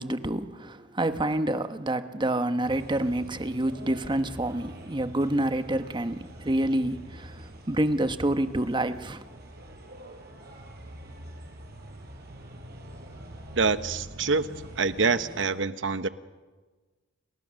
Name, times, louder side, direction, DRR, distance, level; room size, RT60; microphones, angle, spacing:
voice 1, 0.0-9.3, right 1 dB, 25° right, 1.0 m, -28 dB
sound 1, 2.6-15.4, right 1 dB, 60° right, 4.8 m, -45 dB
voice 2, 13.6-14.5 14.8-16.1, right 4 dB, 75° right, 1.0 m, -25 dB
29.5 x 20.0 x 6.4 m
head